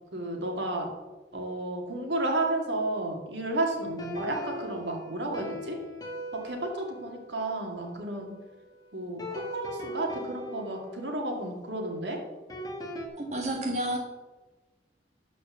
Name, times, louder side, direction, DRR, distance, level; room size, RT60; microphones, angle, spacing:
voice 1, 0.1-0.9 1.3-5.8 6.3-8.3 8.9-12.2, right 2 dB, 80° right, 1 dB, 2.3 m, -32 dB
sound 1, 3.7-8.5 9.2-13.1, equal, 20° left, 1.4 m, -41 dB
voice 2, 13.2-14.0, right 1 dB, 40° right, 0 dB, 1.6 m, -30 dB
12.5 x 5.0 x 7.2 m, 1.2 s
head